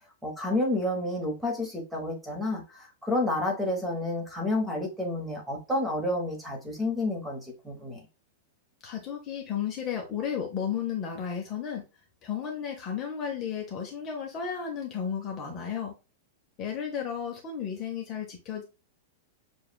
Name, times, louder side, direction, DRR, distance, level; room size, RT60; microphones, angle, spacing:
voice 1, 0.2-8.0, left 1 dB, 5° right, 1.0 m, -30 dB
voice 2, 8.8-11.8 12.2-15.9 16.6-18.6, left 8 dB, 25° left, 0.7 m, -33 dB
6.9 x 2.3 x 2.2 m
supercardioid pair, 175°, 0 cm